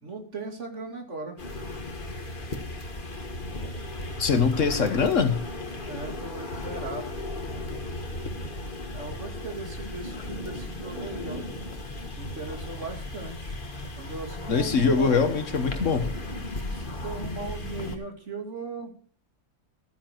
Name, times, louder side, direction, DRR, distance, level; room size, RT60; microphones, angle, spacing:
voice 1, 0.0-1.4 5.8-7.1 8.9-11.4 12.1-13.6 14.0-15.4 16.7-18.9, right 3 dB, 55° right, 4 dB, 2.8 m, -38 dB
sound 1, 1.4-18.0, left 2 dB, 35° left, 1.8 m, -36 dB
voice 2, 4.2-5.4 14.5-16.1, left 5 dB, 60° left, 9 dB, 1.5 m, -23 dB
13.5 x 9.9 x 4.5 m, 0.43 s
omnidirectional pair, 1.5 m